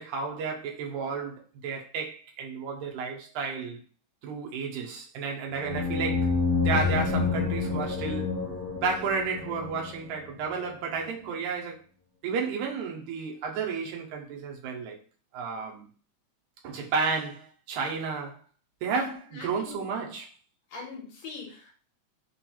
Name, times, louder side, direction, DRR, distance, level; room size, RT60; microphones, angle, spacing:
voice 1, 0.0-3.8 4.2-6.3 6.6-8.3 8.8-11.8 12.2-15.0 15.3-15.8 16.6-18.4 18.8-20.3, right 5 dB, 85° right, 2.1 m, -32 dB
sound 1, 5.6-10.1, left 4 dB, 55° right, 0.9 m, -28 dB
voice 2, 18.9-19.9 20.7-21.7, left 4 dB, 65° left, 2.2 m, -42 dB
5.1 x 2.3 x 2.8 m
omnidirectional pair, 3.4 m